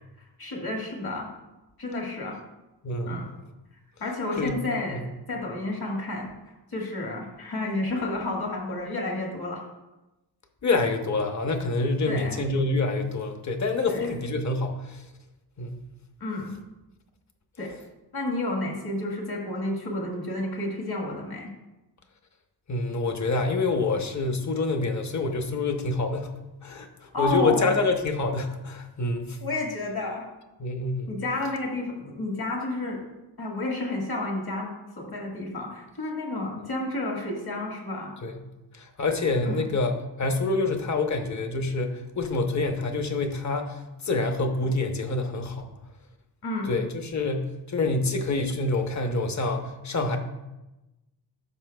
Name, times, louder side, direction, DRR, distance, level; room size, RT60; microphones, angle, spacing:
voice 1, 0.4-1.3 1.8-2.4 3.1-3.2 4.0-6.3 6.7-9.6 12.1-12.4 13.9-14.1 16.2-16.6 17.6-17.7 18.1-21.5 27.1-27.7 29.4-30.3 31.1-33.0 33.4-38.1 39.5-39.7 46.4-46.7, left 2 dB, 55° left, -1 dB, 1.8 m, -31 dB
voice 2, 2.8-3.2 4.4-4.6 4.9-5.0 10.6-15.0 15.6-15.8 22.7-26.3 26.6-29.4 30.6-31.2 38.2-38.5 38.8-43.8 44.0-45.7 46.7-50.2, left 3 dB, 40° left, 5 dB, 0.8 m, -27 dB
12.5 x 6.0 x 2.3 m, 1.0 s
wide cardioid pair, 120°, 43 cm